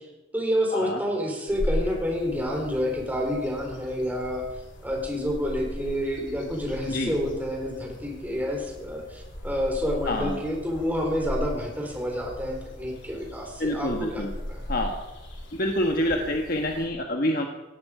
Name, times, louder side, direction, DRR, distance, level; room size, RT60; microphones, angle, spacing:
voice 1, 0.3-4.4 4.8-14.6, equal, 10° right, 0 dB, 4.0 m, -29 dB
sound 1, 1.5-16.9, equal, 70° left, 3.7 m, -37 dB
voice 2, 10.1-10.4 13.6-14.3 14.7-14.9 15.5-17.5, left 1 dB, 50° left, 2 dB, 1.4 m, -27 dB
17.5 x 16.0 x 5.0 m, 1.1 s
head